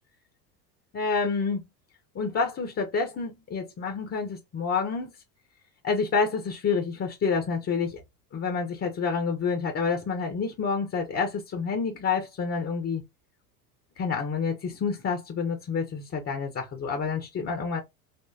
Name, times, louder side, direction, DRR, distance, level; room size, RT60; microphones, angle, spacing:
voice 1, 0.9-1.6 2.1-5.1 5.8-8.0 8.3-13.0 14.0-17.8, left 5 dB, 30° left, 1.2 m, -28 dB
5.5 x 3.0 x 2.8 m
hypercardioid pair, 80°, 48 cm